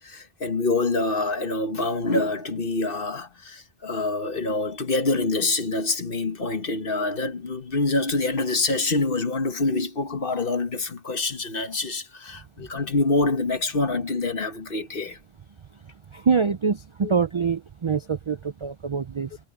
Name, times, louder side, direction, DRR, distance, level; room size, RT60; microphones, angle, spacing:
voice 1, 0.0-15.2 17.0-17.1, left 3 dB, 60° left, 1.6 m, -26 dB
voice 2, 16.1-19.4, right 6 dB, 45° right, 0.4 m, -25 dB
omnidirectional pair, 1.1 m